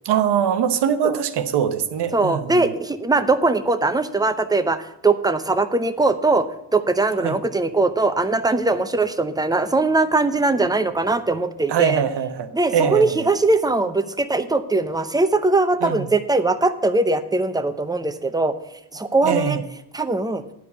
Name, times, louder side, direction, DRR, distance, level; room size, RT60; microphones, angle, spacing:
voice 1, 0.0-2.7 7.2-7.3 11.7-13.3 15.8-16.0 19.2-19.6, right 8 dB, 80° right, 9 dB, 1.0 m, -22 dB
voice 2, 2.1-6.5 6.7-12.0 12.5-18.6 18.9-19.6 19.9-20.4, right 3 dB, 10° right, 9 dB, 0.7 m, -21 dB
10.5 x 4.9 x 8.1 m, 0.84 s
cardioid pair, 105°, 40 cm